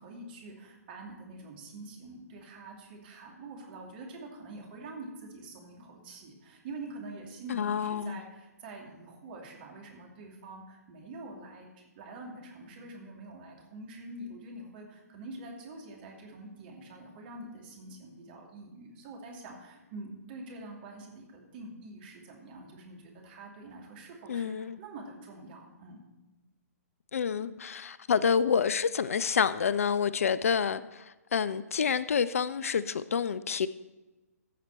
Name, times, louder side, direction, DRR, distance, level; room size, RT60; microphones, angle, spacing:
voice 1, 0.0-26.0, right 2 dB, 35° right, 2.5 m, -46 dB
voice 2, 7.5-8.2 24.3-24.8 27.1-33.7, left 6 dB, 60° left, 0.4 m, -28 dB
15.0 x 5.8 x 4.3 m
figure-of-eight pair, 125°, 9 cm